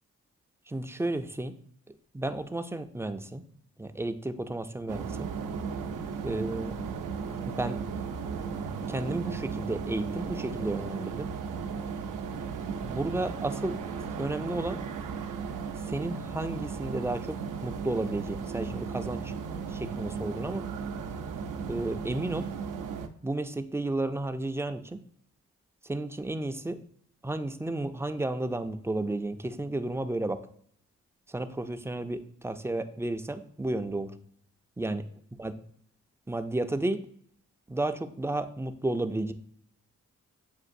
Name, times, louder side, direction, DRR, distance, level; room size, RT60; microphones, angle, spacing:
voice 1, 0.7-1.5 2.1-3.4 3.8-5.3 6.2-6.7 7.4-7.8 8.9-11.3 12.8-13.8 14.2-14.8 15.9-17.4 17.6-19.3 19.7-20.6 21.7-22.5 23.2-25.0 25.9-26.8 27.2-30.4 31.3-34.1 34.8-35.0 35.4-35.5 36.3-37.0 37.7-39.3, right 2 dB, 10° right, 8 dB, 0.3 m, -32 dB
sound 1, 4.9-23.1, right 6 dB, 85° right, 0.5 m, -36 dB
7.4 x 2.5 x 2.5 m, 0.64 s
cardioid pair, 60°, 30 cm